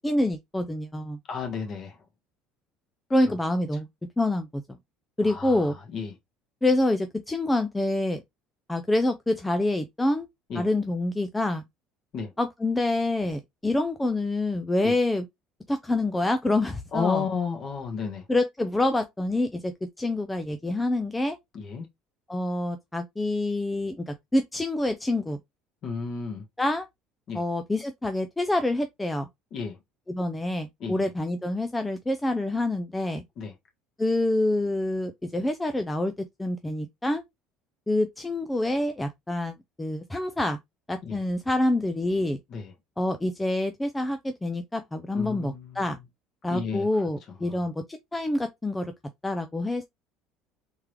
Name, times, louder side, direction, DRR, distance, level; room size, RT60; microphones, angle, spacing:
voice 1, 0.0-1.2 3.1-3.9 4.2-4.6 5.2-5.7 6.6-8.2 8.7-10.3 10.6-11.6 12.4-15.2 15.7-17.2 18.3-21.4 22.3-25.4 26.6-26.9 27.3-29.3 30.1-33.2 34.0-36.1 36.4-37.2 37.9-40.6 40.9-42.4 43.0-46.0 46.4-48.9 49.2-49.8, left 2 dB, 5° left, 0.3 m, -26 dB
voice 2, 1.3-2.0 3.1-3.4 5.2-6.2 10.5-10.7 12.1-12.3 14.8-14.9 16.9-18.2 21.5-21.9 25.8-26.4 27.3-27.4 29.5-29.8 30.8-31.1 33.4-33.5 41.0-41.2 42.5-42.7 45.1-46.0 46.5-47.0 47.4-47.6, left 5 dB, 40° left, 1.4 m, -33 dB
3.6 x 3.3 x 3.1 m
cardioid pair, 165°, 0 cm